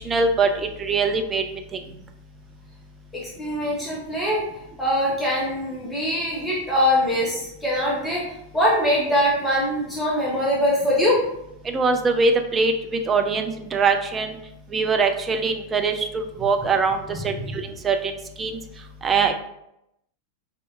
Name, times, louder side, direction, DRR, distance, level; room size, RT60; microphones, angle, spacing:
voice 1, 0.0-1.8 11.7-14.4 14.7-18.1 18.4-18.6 19.0-19.3, right 4 dB, 20° right, 5 dB, 0.4 m, -23 dB
voice 2, 3.1-4.4 4.8-11.2 17.1-17.6, equal, 10° left, -6 dB, 0.8 m, -23 dB
4.3 x 2.6 x 2.4 m, 0.81 s
figure-of-eight pair, 90°, 0 cm